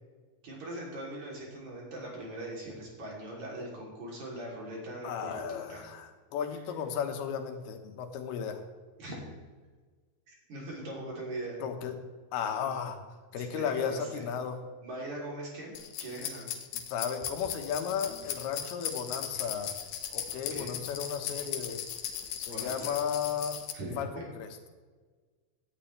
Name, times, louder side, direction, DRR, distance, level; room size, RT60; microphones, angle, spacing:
voice 1, 0.4-5.8 6.5-6.7 9.0-9.3 10.3-11.6 12.6-12.8 13.3-14.2 14.8-15.7 16.0-16.5 18.3-18.4 20.5-20.7 22.5-23.0 23.7-24.3, right 1 dB, 50° right, -3 dB, 4.3 m, -41 dB
voice 2, 5.0-8.6 11.6-12.0 12.3-13.0 13.3-14.6 16.9-19.7 20.1-21.8 22.4-23.6 24.0-24.1 24.4-24.5, left 7 dB, 90° left, 5 dB, 3.2 m, -34 dB
sound 1, 15.7-23.7, left 9 dB, 70° left, 1.9 m, -38 dB
17.0 x 11.0 x 3.3 m, 1.4 s
omnidirectional pair, 4.4 m